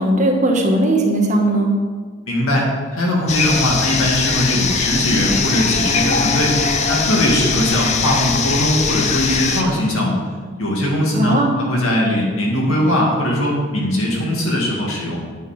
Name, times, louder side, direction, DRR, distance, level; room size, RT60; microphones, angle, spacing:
voice 1, 0.0-1.7 11.1-11.5, right 1 dB, 35° right, 1 dB, 1.2 m, -17 dB
voice 2, 2.3-6.6 6.9-10.2 10.6-11.4 11.7-15.2, left 1 dB, 70° left, -3 dB, 2.2 m, -19 dB
sound 1, 3.3-9.6, left 5 dB, 30° left, 0.6 m, -20 dB
9.1 x 5.7 x 5.1 m, 1.5 s
head